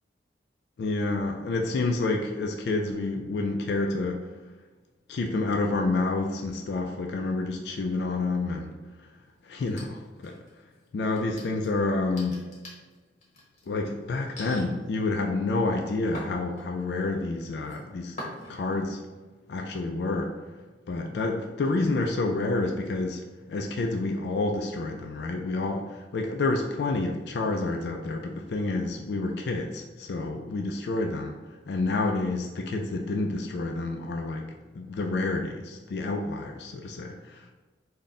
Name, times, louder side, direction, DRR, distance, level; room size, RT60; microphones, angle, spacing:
voice 1, 0.8-4.3 5.1-8.7 9.4-10.3 10.9-12.5 13.7-18.2 18.5-19.1 19.5-20.4 20.9-31.4 31.7-34.5 34.7-37.5, left 2 dB, 65° left, 2 dB, 0.3 m, -29 dB
sound 1, 9.6-10.6 11.0-13.7 14.4-14.6 15.2-17.0 17.4-17.8 18.2-18.8, left 1 dB, 40° left, 1.0 m, -43 dB
4.0 x 2.2 x 3.7 m, 1.2 s
head